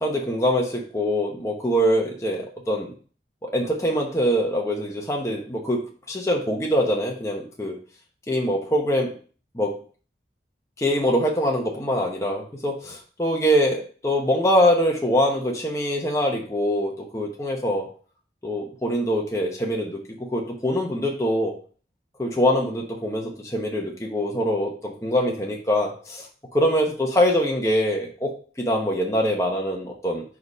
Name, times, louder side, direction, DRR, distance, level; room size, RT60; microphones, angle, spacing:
voice 1, 0.0-2.9 3.4-7.8 8.3-9.1 9.5-9.8 10.8-17.9 18.4-20.0 20.3-21.5 22.2-26.3 26.5-30.2, equal, 15° left, 0 dB, 0.9 m, -24 dB
4.8 x 4.8 x 5.4 m, 0.41 s
head